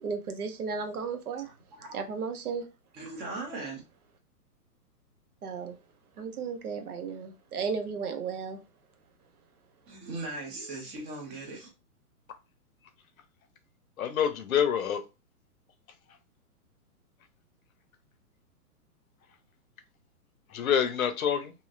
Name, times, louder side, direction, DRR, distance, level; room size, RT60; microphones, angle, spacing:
voice 1, 0.0-1.5 1.9-2.6 5.4-5.7 6.2-8.6, right 5 dB, 65° right, 0.8 m, -34 dB
voice 2, 1.4-2.0 2.9-3.8 9.9-11.7, right 2 dB, 15° right, 0.6 m, -39 dB
voice 3, 14.0-15.0 20.5-21.5, left 8 dB, 60° left, 0.7 m, -26 dB
2.9 x 2.7 x 2.5 m
hypercardioid pair, 130°, 47 cm